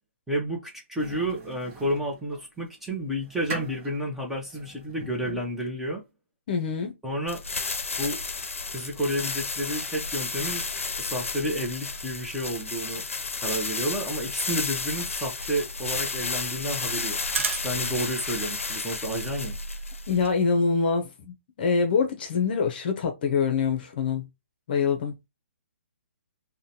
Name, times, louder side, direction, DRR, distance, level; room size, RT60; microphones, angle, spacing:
voice 1, 0.3-6.0 7.0-7.4 8.0-8.2 8.7-10.6 11.0-13.0 13.4-17.2 17.5-19.6, equal, 5° right, 0.8 m, -31 dB
sound 1, 1.0-2.4 3.0-5.7, right 3 dB, 25° right, 1.0 m, -42 dB
voice 2, 6.5-6.9 20.1-24.3 24.7-25.1, left 5 dB, 45° left, 0.7 m, -25 dB
sound 2, 7.3-20.4, left 4 dB, 90° left, 0.5 m, -32 dB
sound 3, 14.8-18.1 18.4-18.5 18.8-19.0 19.2-20.4, right 6 dB, 70° right, 0.5 m, -35 dB
3.7 x 2.2 x 2.8 m
hypercardioid pair, 145°, 7 cm